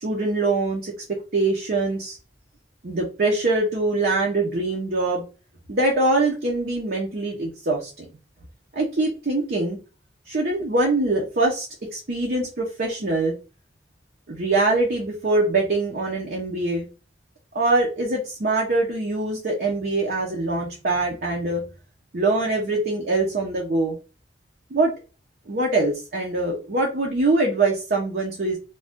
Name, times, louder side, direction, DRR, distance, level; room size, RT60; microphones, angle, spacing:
voice 1, 0.0-2.2 2.8-5.2 5.7-8.1 8.7-9.8 10.3-11.7 11.9-13.3 14.3-16.9 17.5-21.6 22.1-24.0 24.7-24.9 25.5-28.6, right 2 dB, 55° right, -2 dB, 0.7 m, -23 dB
2.6 x 2.3 x 3.5 m, 0.32 s
head